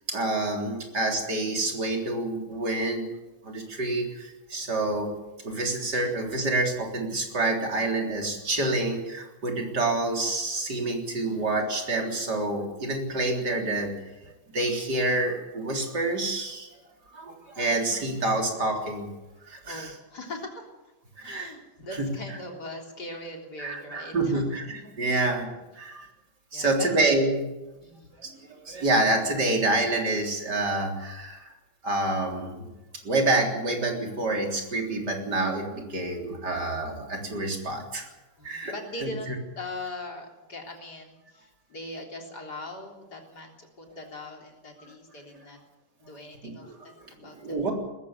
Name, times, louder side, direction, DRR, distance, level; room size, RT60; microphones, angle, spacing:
voice 1, 0.1-3.0 3.4-5.1 5.4-13.9 14.2-16.7 17.1-19.1 19.4-19.9 21.2-21.5 22.0-22.1 23.6-24.6 25.0-26.1 26.5-27.5 28.2-31.6 31.8-32.7 33.0-38.1 38.4-38.7 39.0-39.3 45.3-45.4 46.4-46.8 47.2-47.7, right 2 dB, 50° right, 2 dB, 4.2 m, -27 dB
voice 2, 19.7-20.7 21.2-25.3 25.8-25.9 26.5-26.9 27.8-28.2 38.4-45.6 46.0-47.6, left 2 dB, 50° left, 1 dB, 4.2 m, -41 dB
20.0 x 15.0 x 9.7 m, 1.0 s
omnidirectional pair, 2.2 m